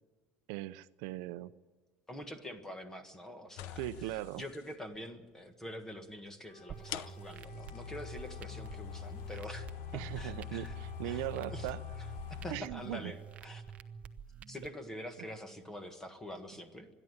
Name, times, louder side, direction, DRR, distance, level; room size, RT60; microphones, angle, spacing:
voice 1, 0.5-1.5 3.8-4.4 9.9-11.8 12.5-13.1, right 16 dB, 80° right, 13 dB, 0.7 m, -39 dB
voice 2, 2.1-10.8 11.0-11.7 12.0-13.2 13.4-13.6 14.5-16.9, left 1 dB, 10° left, 8 dB, 1.6 m, -46 dB
sound 1, 3.6-4.6 5.9-6.0 6.8-12.6, left 10 dB, 70° left, 0.7 m, -44 dB
Wind instrument woodwind instrument, 6.5-14.2, left 1 dB, 35° left, 1.3 m, -57 dB
sound 2, 6.7-14.7, right 7 dB, 25° right, 0.8 m, -49 dB
26.0 x 11.0 x 9.7 m, 1.4 s
cardioid pair, 180°, 5 cm